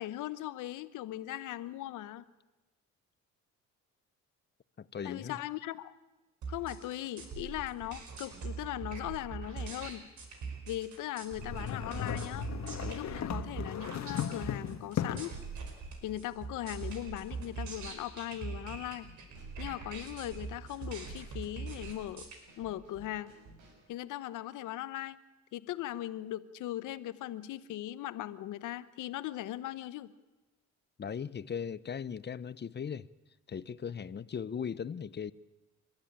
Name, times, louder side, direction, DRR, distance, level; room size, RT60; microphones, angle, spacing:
voice 1, 0.0-2.2 5.0-6.0 6.5-10.0 10.7-12.5 12.8-15.4 16.0-19.1 19.6-22.3 22.6-23.3 23.9-25.2 25.5-30.1, left 13 dB, 90° left, 1.1 m, -39 dB
voice 2, 4.8-5.4 31.0-33.1 33.5-35.3, left 7 dB, 35° left, 0.8 m, -38 dB
sound 1, 6.4-22.4, right 5 dB, 70° right, 5.3 m, -42 dB
sound 2, 11.4-15.4, left 9 dB, 65° left, 1.6 m, -36 dB
Drum kit / Snare drum, 18.7-23.9, right 2 dB, 90° right, 6.1 m, -58 dB
29.0 x 13.0 x 8.8 m
cardioid pair, 90°, 30 cm